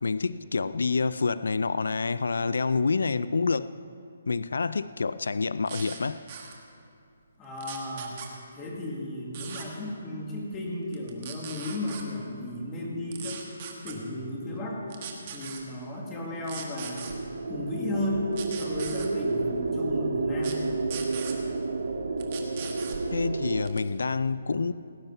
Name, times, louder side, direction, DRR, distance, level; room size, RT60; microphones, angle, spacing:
voice 1, 0.0-3.7 4.3-6.2 23.1-24.7, left 4 dB, 85° left, 16 dB, 0.4 m, -27 dB
sound 1, 5.7-6.0 6.3-6.5 7.6-8.3 9.3-9.7 10.9-12.0 13.1-13.9 14.9-15.6 16.4-17.1 18.3-19.1 20.4-20.6 20.9-21.4 22.2-23.0 23.7-23.9, right 8 dB, 30° right, 1.4 m, -39 dB
voice 2, 7.4-8.2 8.5-13.4 13.8-14.8 15.3-17.1 17.5-18.3 18.6-20.6 23.6-23.7, left 1 dB, 15° left, -2 dB, 1.9 m, -34 dB
sound 2, 16.6-23.7, right 3 dB, 80° right, 0.9 m, -31 dB
18.0 x 10.5 x 5.5 m, 2.5 s
hypercardioid pair, 175°, 0 cm